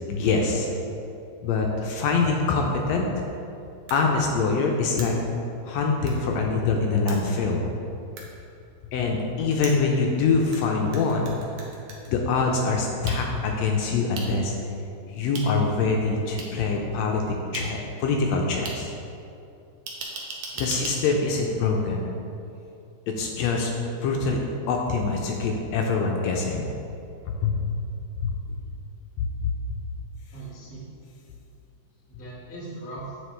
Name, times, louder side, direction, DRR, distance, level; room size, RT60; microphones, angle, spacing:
voice 1, 0.1-0.7 1.4-3.2 3.9-5.2 5.6-7.6 8.9-11.4 12.1-14.5 15.1-18.9 20.6-22.1 23.1-23.7 24.0-24.4 24.7-26.6 27.4-27.7 28.2-28.3 29.2-29.5, left 4 dB, 80° left, 1 dB, 1.7 m, -24 dB
sound 1, 3.9-4.0 5.0-5.1 6.1-6.2 7.1-7.2 8.2-8.3 9.6-10.6 10.9-12.1 13.1-13.2 14.2-14.3 15.3-15.5 16.4-16.5 17.5-17.6 18.7-18.8 19.9-20.9, right 3 dB, 80° right, 2.3 m, -36 dB
voice 2, 20.5-21.0 30.3-30.8 32.1-33.2, right 2 dB, 10° left, -8 dB, 0.6 m, -40 dB
7.9 x 5.5 x 3.3 m, 2.7 s
omnidirectional pair, 3.3 m